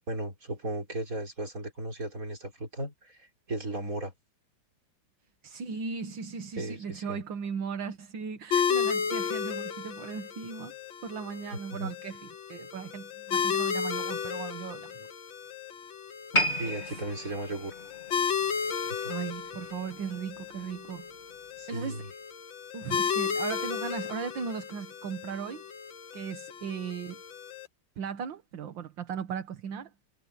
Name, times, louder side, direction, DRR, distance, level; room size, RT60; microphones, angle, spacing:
voice 1, 0.1-4.1 6.6-7.2 11.7-11.9 16.6-17.7 18.9-19.1 21.6-22.1, right 1 dB, 40° right, 6.7 m, -36 dB
voice 2, 5.4-10.7 11.0-15.1 16.7-17.0 19.1-21.1 21.7-22.0 22.7-25.6 26.1-27.2 28.0-29.9, right 6 dB, 65° right, 2.1 m, -37 dB
sound 1, 8.5-27.7, left 7 dB, 70° left, 2.3 m, -34 dB
sound 2, 16.3-19.6 19.9-20.2 20.9-21.0, equal, 20° left, 2.5 m, -33 dB
omnidirectional pair, 2.3 m